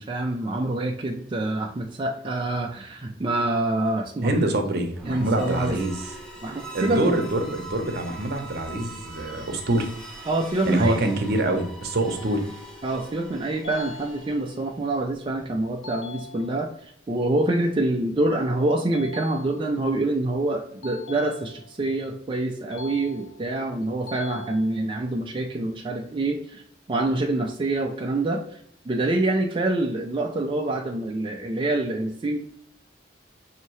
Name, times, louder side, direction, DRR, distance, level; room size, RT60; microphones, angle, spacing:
voice 1, 0.0-4.5 5.1-5.8 6.4-7.2 10.3-11.0 12.8-26.6 26.9-28.4 28.9-32.4, right 2 dB, 25° right, 1 dB, 0.4 m, -26 dB
voice 2, 4.2-6.0 6.7-9.9 10.7-12.4, right 1 dB, 60° right, 5 dB, 0.8 m, -25 dB
sound 1, 4.9-14.8, right 1 dB, 5° left, 1.0 m, -42 dB
sound 2, 13.6-14.7 15.8-16.8 18.9-19.9 20.8-21.9 22.7-23.6 24.1-25.1, left 4 dB, 80° left, 0.6 m, -42 dB
5.7 x 2.7 x 3.0 m, 0.66 s
head